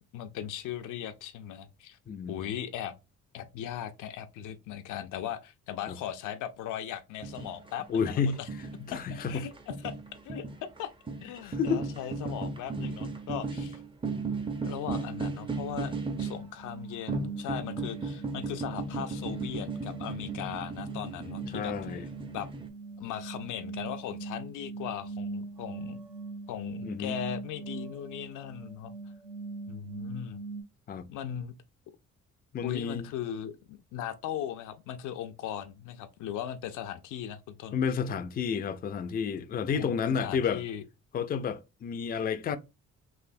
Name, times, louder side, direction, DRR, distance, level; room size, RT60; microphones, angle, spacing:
voice 1, 0.1-2.0 2.3-2.9 3.3-8.5 9.3-9.9 10.2-10.9 11.2-13.8 14.6-21.7 22.3-22.5 23.0-26.0 26.5-28.9 29.7-30.4 31.1-31.5 32.6-37.8 39.7-40.8, left 10 dB, 85° left, 0.5 m, -38 dB
voice 2, 2.1-2.5 5.9-6.0 7.9-8.4 8.9-9.5 11.4-11.8 21.5-22.1 26.8-27.2 30.9-31.1 32.5-33.1 37.7-40.6 41.1-42.6, left 6 dB, 30° left, 0.4 m, -30 dB
sound 1, 7.2-7.7 8.0-10.8 11.1-16.5 17.1-22.7, right 3 dB, 15° right, 0.5 m, -36 dB
sound 2, 16.0-30.6, right 3 dB, 85° right, 1.3 m, -42 dB
3.3 x 2.6 x 2.5 m
cardioid pair, 90°, 30 cm